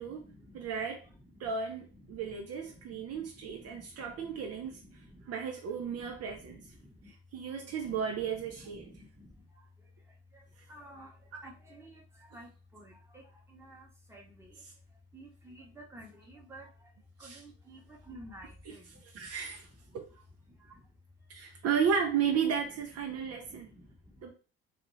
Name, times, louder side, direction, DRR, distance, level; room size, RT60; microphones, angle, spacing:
voice 1, 0.0-1.5 1.9-5.3 5.8-7.1 7.8-14.6 15.1-16.9 17.2-19.3 19.9-20.0 20.5-20.9 23.0-24.2, equal, 10° right, 1.1 m, -53 dB
voice 2, 0.5-1.0 1.4-4.8 5.3-6.6 7.1-8.9 11.3-11.4 17.2-17.4 18.7-19.7 19.9-20.0 21.3-23.7 24.2-24.3, right 7 dB, 50° right, 0.8 m, -34 dB
2.6 x 2.4 x 3.1 m
figure-of-eight pair, 50°, 31 cm